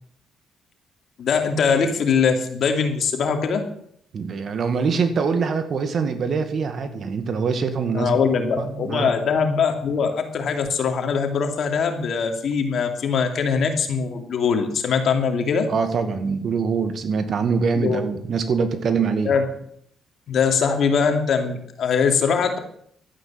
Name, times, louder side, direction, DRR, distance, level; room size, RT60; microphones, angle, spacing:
voice 1, 1.2-3.7 7.9-15.7 17.7-18.0 19.2-19.4 20.3-22.6, left 6 dB, 60° left, 5 dB, 2.6 m, -22 dB
voice 2, 4.1-9.1 15.7-19.3, right 5 dB, 55° right, 9 dB, 2.0 m, -24 dB
12.5 x 9.5 x 7.6 m, 0.67 s
cardioid pair, 90°, 0 cm